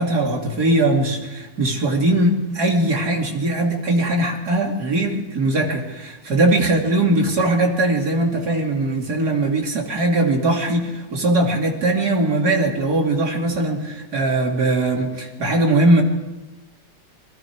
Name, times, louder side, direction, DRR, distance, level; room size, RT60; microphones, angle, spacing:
voice 1, 0.0-16.0, right 2 dB, 45° right, 1 dB, 3.0 m, -20 dB
27.0 x 21.0 x 4.7 m, 1.1 s
omnidirectional pair, 2.4 m